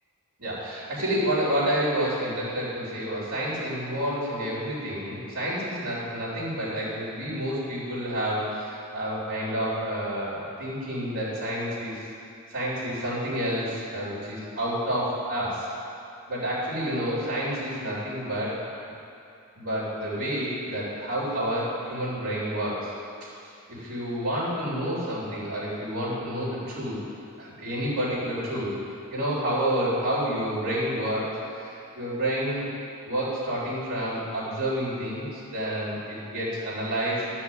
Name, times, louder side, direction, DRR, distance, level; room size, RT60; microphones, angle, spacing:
voice 1, 0.4-12.0 12.5-15.7 16.3-18.5 19.5-22.9 23.7-27.0 27.4-28.8 29.1-32.6 33.0-37.3, equal, 70° right, -9 dB, 3.4 m, -29 dB
12.5 x 5.8 x 7.8 m, 2.5 s
head